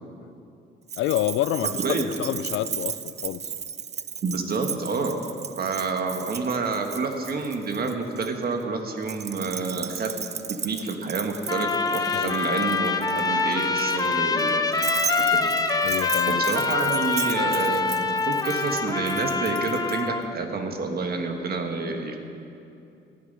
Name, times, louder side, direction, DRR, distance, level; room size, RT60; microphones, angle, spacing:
Keys jangling, 0.9-8.3 9.0-20.0, right 7 dB, 35° right, 0.5 m, -35 dB
voice 1, 1.0-3.4 12.1-12.4 15.8-16.4, left 13 dB, 80° left, 16 dB, 0.4 m, -28 dB
voice 2, 1.6-2.1 4.2-5.3 5.6-10.2 10.5-14.6 15.2-15.5 16.3-22.2, right 4 dB, 50° right, 4 dB, 1.5 m, -28 dB
Trumpet, 11.5-20.3, left 4 dB, 20° left, 0.9 m, -25 dB
13.5 x 6.0 x 9.4 m, 2.7 s
cardioid pair, 90°, 20 cm